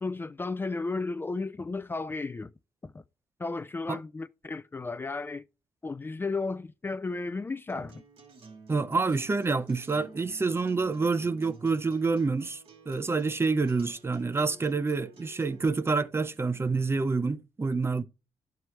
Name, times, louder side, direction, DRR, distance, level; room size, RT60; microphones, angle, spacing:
voice 1, 0.0-2.5 2.8-3.0 3.4-5.4 5.8-8.0, left 3 dB, 20° left, 0.3 m, -34 dB
Acoustic guitar, 7.7-15.7, right 4 dB, 75° right, 2.8 m, -52 dB
voice 2, 8.7-12.6 12.9-18.0, right 4 dB, 25° right, 0.6 m, -27 dB
11.0 x 4.7 x 3.2 m
cardioid pair, 85°, 10 cm